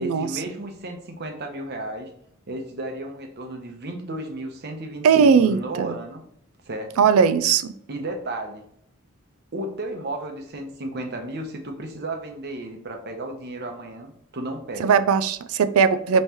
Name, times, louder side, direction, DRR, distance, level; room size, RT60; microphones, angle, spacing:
voice 1, 0.0-2.1 2.5-6.2 6.6-6.9 7.9-8.6 9.5-14.9, right 1 dB, 50° right, 4 dB, 0.8 m, -33 dB
voice 2, 5.0-5.9 7.0-7.7 14.8-16.2, right 6 dB, 85° right, 13 dB, 0.4 m, -19 dB
5.4 x 3.1 x 3.0 m, 0.69 s
head